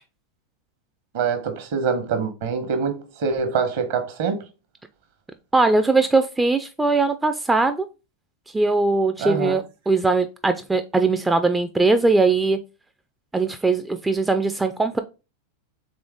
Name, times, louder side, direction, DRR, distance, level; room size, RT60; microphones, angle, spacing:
voice 1, 1.1-4.5 9.2-9.6, right 5 dB, 55° right, 1.0 m, -25 dB
voice 2, 5.5-7.9 8.5-12.6 13.3-15.0, right 3 dB, 10° right, 0.3 m, -20 dB
3.7 x 3.5 x 3.5 m
figure-of-eight pair, 90°, 0 cm